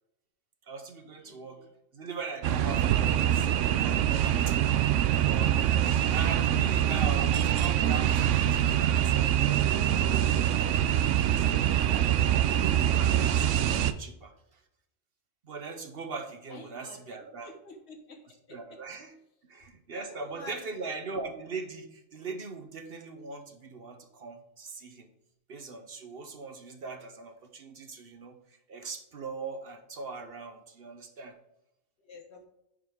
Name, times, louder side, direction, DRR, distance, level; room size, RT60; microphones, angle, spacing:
voice 1, 0.6-1.7 1.9-4.1 4.5-4.6 5.1-10.6 11.2-11.9 12.2-14.6 15.4-17.5 18.5-19.2 19.5-25.1 25.5-31.4, right 4 dB, 55° right, 7 dB, 1.1 m, -41 dB
voice 2, 1.2-1.7 16.5-17.0 17.4-18.4 19.9-20.6 32.0-32.5, left 2 dB, 65° left, 4 dB, 1.6 m, -48 dB
sound 1, 2.4-13.9, right 11 dB, 90° right, 0.9 m, -24 dB
9.8 x 5.0 x 3.6 m, 0.84 s
omnidirectional pair, 1.2 m